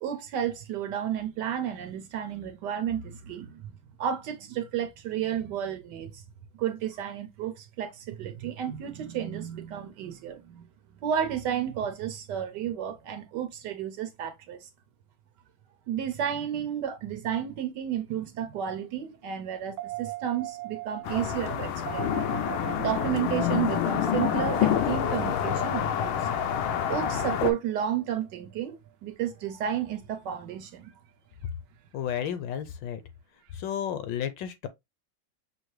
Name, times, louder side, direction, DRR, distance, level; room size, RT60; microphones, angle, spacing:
voice 1, 0.0-3.6 4.0-6.2 6.6-10.7 11.0-14.7 15.9-22.1 22.8-26.3 26.9-28.8 29.0-30.9, right 9 dB, 70° right, 1.1 m, -32 dB
sound 1, 19.8-28.2 30.8-30.9, right 14 dB, 85° right, 0.8 m, -39 dB
sound 2, 21.1-27.5, left 10 dB, 90° left, 1.5 m, -27 dB
voice 2, 31.9-33.0 33.5-34.7, left 9 dB, 70° left, 1.3 m, -32 dB
6.2 x 2.7 x 3.1 m
omnidirectional pair, 2.2 m